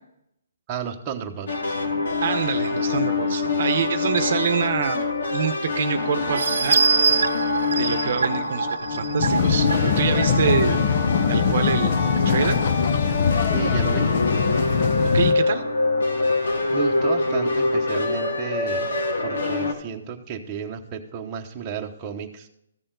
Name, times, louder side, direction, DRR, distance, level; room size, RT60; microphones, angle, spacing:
voice 1, 0.7-1.8 13.5-14.1 16.7-18.9 19.2-22.5, right 7 dB, 20° right, 0 dB, 1.0 m, -32 dB
sound 1, 1.5-19.7, left 3 dB, 85° left, 2.3 m, -25 dB
voice 2, 2.2-6.8 7.8-10.8 11.3-12.6 15.1-15.6, right 7 dB, 50° right, 10 dB, 0.9 m, -26 dB
sound 2, 6.3-10.8 11.3-11.4 11.7-11.8, right 5 dB, 80° right, 0.6 m, -24 dB
sound 3, 9.2-15.3, left 6 dB, 40° left, 0.7 m, -22 dB
14.5 x 6.8 x 3.9 m, 0.75 s
hypercardioid pair, 165°, 0 cm